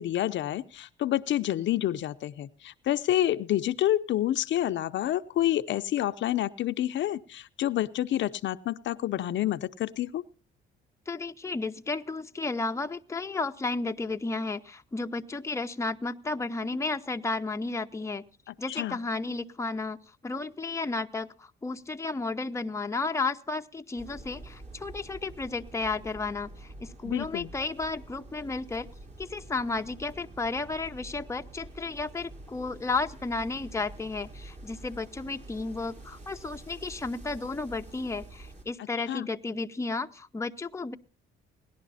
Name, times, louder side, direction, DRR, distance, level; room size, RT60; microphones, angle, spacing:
voice 1, 0.0-10.2 18.7-19.0 27.0-27.5 39.1-39.3, left 12 dB, 70° left, 10 dB, 0.6 m, -28 dB
voice 2, 11.1-18.2 18.6-20.0 20.2-28.9 29.2-40.9, left 3 dB, 15° left, 6 dB, 0.8 m, -33 dB
sound 1, 24.0-38.6, right 2 dB, 35° right, 4.9 m, -47 dB
18.0 x 11.0 x 4.1 m, 0.38 s
cardioid pair, 90°, 20 cm